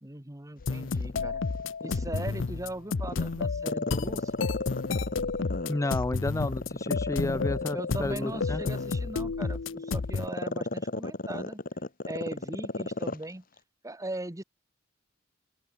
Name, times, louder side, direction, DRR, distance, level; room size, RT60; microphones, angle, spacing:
voice 1, 0.0-1.4 1.8-4.5 7.7-11.6 12.0-13.4 13.8-14.4, right 1 dB, 15° right, 1.2 m, -39 dB
sound 1, 0.6-10.3, left 4 dB, 70° left, 0.6 m, -31 dB
Growling, 0.8-2.6 3.0-6.0 6.4-13.3 13.6-13.7, left 2 dB, 45° left, 2.1 m, -34 dB
voice 2, 5.7-8.6, left 2 dB, 15° left, 0.5 m, -31 dB
open air
head